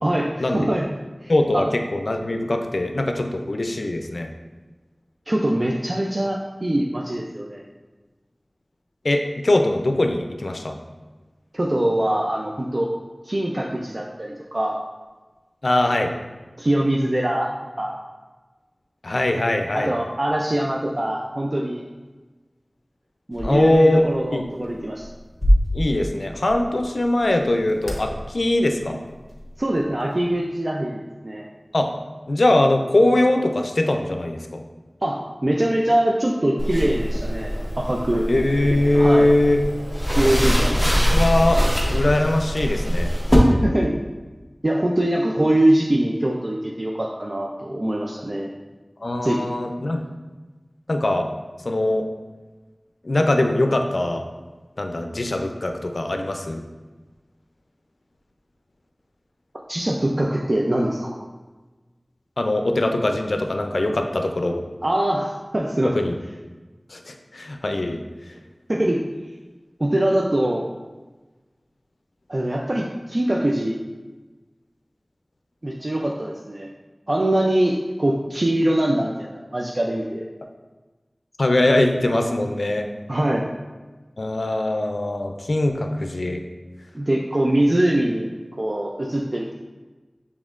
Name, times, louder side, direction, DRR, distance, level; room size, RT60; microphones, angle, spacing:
voice 1, 0.0-0.9 1.2-1.7 5.3-7.6 11.5-12.9 13.2-14.8 16.6-17.5 17.8-18.0 19.7-21.8 23.3-25.1 29.6-31.5 35.0-38.3 38.9-39.3 40.1-40.8 43.4-44.0 44.6-48.5 49.2-49.5 59.7-61.2 64.8-65.9 68.7-69.0 69.8-70.7 72.3-73.8 75.6-76.7 77.1-80.2 83.1-83.5 86.9-88.3 88.6-89.5, right 1 dB, 50° right, -1 dB, 0.4 m, -23 dB
voice 2, 1.3-4.3 9.0-10.8 15.6-16.1 19.0-19.9 23.4-24.4 25.7-29.0 31.7-31.9 32.3-34.6 38.3-39.6 41.1-41.6 41.9-43.1 49.0-50.0 50.9-51.3 51.6-52.1 53.0-54.2 54.8-56.6 62.4-64.6 65.8-66.1 66.9-68.0 81.4-82.9 84.2-86.4, left 1 dB, 75° left, 4 dB, 0.4 m, -21 dB
sound 1, 23.3-30.4, equal, 30° left, 1.0 m, -28 dB
sound 2, 36.6-43.4, equal, 5° left, 0.9 m, -23 dB
6.2 x 3.5 x 2.4 m, 1.2 s
wide cardioid pair, 50°, 0 cm